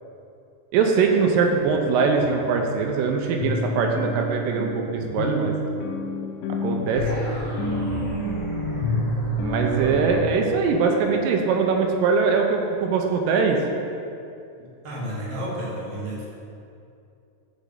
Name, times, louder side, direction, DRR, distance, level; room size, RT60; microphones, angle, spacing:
voice 1, 0.7-5.6 6.6-7.1 9.4-13.6, right 5 dB, 80° right, 2 dB, 2.0 m, -22 dB
sound 1, 1.7-1.8 2.2-2.3 2.8-2.9 3.4-10.2, equal, 75° left, 2.1 m, -29 dB
sound 2, 6.9-10.2, left 2 dB, 35° left, 2.2 m, -31 dB
voice 2, 14.6-16.3, equal, 55° right, -5 dB, 1.9 m, -32 dB
8.2 x 7.4 x 3.8 m, 2.6 s
omnidirectional pair, 4.5 m